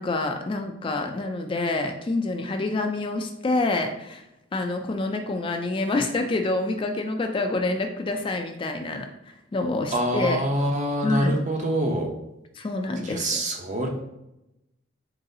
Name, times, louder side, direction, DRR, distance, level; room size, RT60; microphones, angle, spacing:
voice 1, 0.0-4.2 4.5-9.1 9.5-10.4 11.0-11.4 12.6-13.4, left 2 dB, 25° left, 4 dB, 0.3 m, -27 dB
voice 2, 9.9-12.1 13.0-13.9, right 1 dB, 40° right, 1 dB, 0.7 m, -25 dB
3.9 x 3.8 x 2.7 m, 0.88 s
head